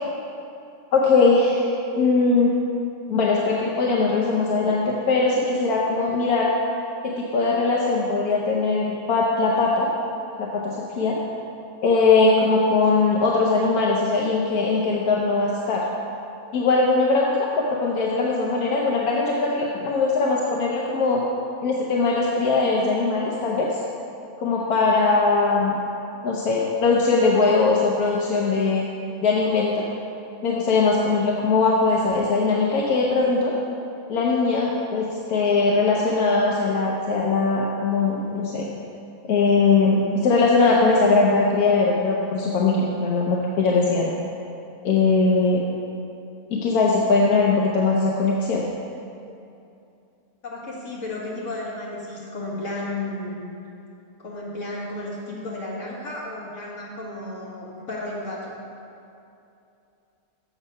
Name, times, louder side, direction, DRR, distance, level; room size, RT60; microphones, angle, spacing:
voice 1, 0.9-2.5 3.1-6.5 7.2-9.9 10.4-11.2 11.8-15.8 16.5-21.2 21.6-23.7 24.4-25.8 26.2-28.9 29.2-29.8 30.4-33.5 34.1-38.7 39.3-44.1 44.8-45.6 46.5-48.6, left 3 dB, 80° left, -3 dB, 1.3 m, -20 dB
voice 2, 50.4-53.5 54.2-58.5, left 2 dB, 55° left, -5 dB, 2.0 m, -33 dB
7.2 x 7.1 x 5.4 m, 2.7 s
omnidirectional pair, 1.6 m